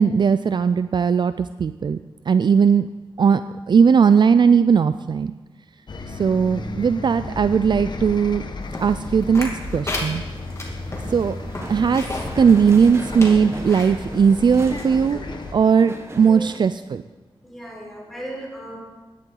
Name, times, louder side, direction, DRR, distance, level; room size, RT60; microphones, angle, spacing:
voice 1, 0.0-2.0 2.3-2.9 3.2-3.4 3.7-5.3 6.1-8.4 8.8-10.2 11.1-11.4 11.7-12.0 12.4-15.2 15.5-17.0, right 6 dB, 55° right, 12 dB, 0.4 m, -18 dB
Bus, 5.9-15.5, left 3 dB, 50° left, 1.0 m, -34 dB
sound 1, 8.7-12.4 12.8-12.9 13.2-13.9 14.5-14.6, left 1 dB, 30° left, 2.4 m, -32 dB
sound 2, 10.3-16.6, right 2 dB, 30° right, 1.3 m, -37 dB
voice 2, 17.4-18.8, right 1 dB, ahead, -3 dB, 4.6 m, -35 dB
16.0 x 11.0 x 3.9 m, 1.2 s
wide cardioid pair, 100°, 9 cm